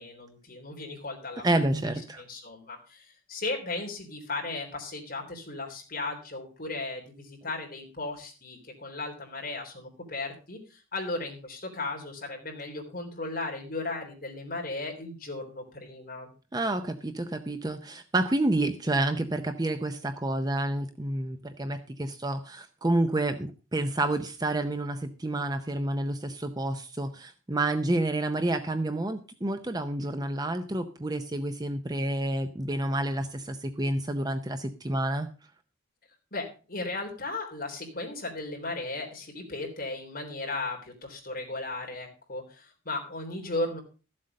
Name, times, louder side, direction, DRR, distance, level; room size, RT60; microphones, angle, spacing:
voice 1, 0.0-1.5 2.2-16.3 36.3-43.8, left 2 dB, 45° left, 1 dB, 3.5 m, -36 dB
voice 2, 1.4-2.2 16.5-35.3, right 1 dB, 20° right, 9 dB, 0.6 m, -29 dB
13.5 x 7.7 x 5.2 m, 0.35 s
head